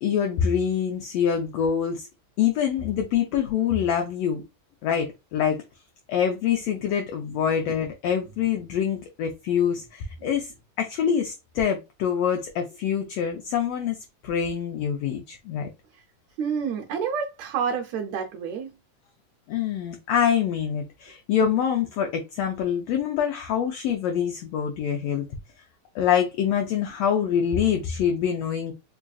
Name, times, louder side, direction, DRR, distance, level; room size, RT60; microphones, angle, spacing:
voice 1, 0.0-2.1 2.4-4.4 4.8-5.6 6.1-10.5 10.8-14.0 14.2-15.7 19.5-25.3 25.9-28.7, left 8 dB, 90° left, 1.4 m, -25 dB
voice 2, 16.4-18.7, right 6 dB, 75° right, 1.6 m, -29 dB
4.7 x 2.5 x 2.3 m
omnidirectional pair, 3.5 m